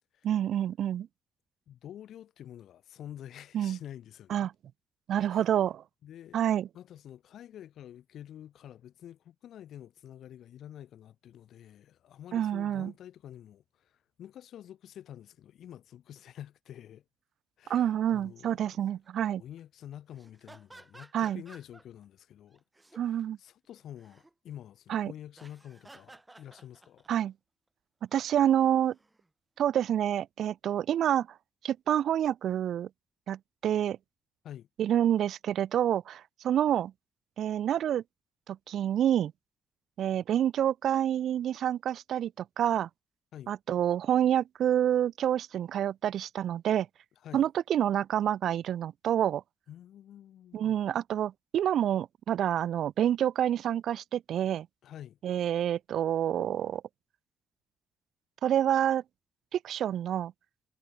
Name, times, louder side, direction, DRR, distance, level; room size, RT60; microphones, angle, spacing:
voice 1, 0.2-1.1 3.5-3.8 4.3-4.5 5.1-5.8 6.3-6.7 12.3-12.9 17.7-19.4 21.1-21.4 23.0-23.4 24.9-25.1 27.1-27.3 28.1-28.9 29.6-31.3 31.6-32.9 33.3-34.0 34.8-36.9 37.4-38.0 38.5-39.3 40.0-42.9 43.5-46.9 47.3-49.4 50.5-54.7 55.2-56.8 58.4-59.0 59.5-60.3, right 10 dB, 70° right, 0.9 m, -28 dB
voice 2, 1.7-4.5 5.2-5.5 6.0-6.4 6.7-17.0 17.6-18.8 19.4-22.6 22.9-27.1 34.4-34.7 43.3-43.5 47.2-47.5 49.7-50.8 54.8-55.2, left 11 dB, 70° left, 3.4 m, -48 dB
sound 1, 17.8-18.1 18.5-18.7 19.0-19.6 19.9-22.0 22.5-23.2 23.6-24.3 25.3-27.3 28.6-29.3, right 2 dB, 15° right, 3.5 m, -55 dB
cardioid pair, 90°, 0 cm